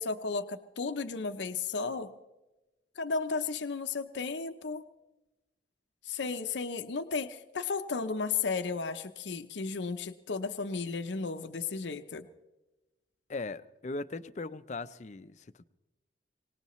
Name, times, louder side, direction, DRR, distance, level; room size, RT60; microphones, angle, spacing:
voice 1, 0.0-2.1 3.0-4.8 6.1-12.3, left 4 dB, 80° left, 8 dB, 0.7 m, -34 dB
voice 2, 13.3-15.7, left 3 dB, 40° left, 14 dB, 0.5 m, -39 dB
24.5 x 19.0 x 3.1 m, 1.1 s
head